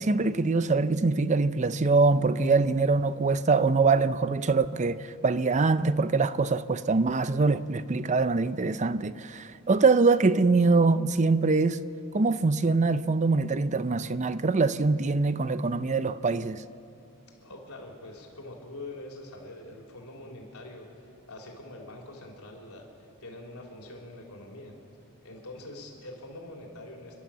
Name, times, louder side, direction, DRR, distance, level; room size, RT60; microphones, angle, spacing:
voice 1, 0.0-11.8 12.1-16.6, right 3 dB, 35° right, 0.5 m, -24 dB
voice 2, 17.4-20.9 21.3-22.9 23.2-24.7 25.2-27.2, left 1 dB, 85° left, 3.9 m, -44 dB
30.0 x 12.0 x 7.4 m
head